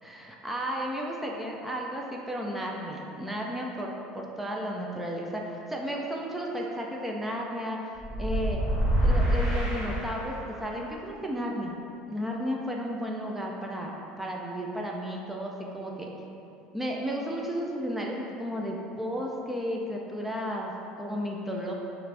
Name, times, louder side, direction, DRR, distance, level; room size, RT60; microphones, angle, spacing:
voice 1, 0.0-7.8 8.2-8.6 9.0-11.7 12.0-16.1 16.7-21.7, equal, 5° right, -1 dB, 0.3 m, -33 dB
sound 1, 8.0-10.6, equal, 25° right, 1.2 m, -26 dB
5.9 x 2.5 x 3.3 m, 2.8 s
cardioid pair, 150°, 3 cm